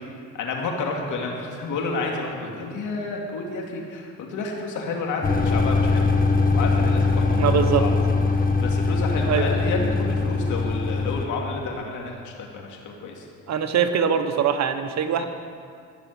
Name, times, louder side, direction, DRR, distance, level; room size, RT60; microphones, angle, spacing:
voice 1, 0.3-6.1 6.5-13.3 15.2-15.3, left 3 dB, 80° left, 0 dB, 2.6 m, -30 dB
sound 1, 5.2-11.3, left 3 dB, 30° left, 1.7 m, -21 dB
voice 2, 7.4-7.8 9.3-9.5 13.5-15.2, right 7 dB, 60° right, 8 dB, 1.2 m, -22 dB
14.5 x 7.2 x 9.6 m, 2.3 s
cardioid pair, 90°, 30 cm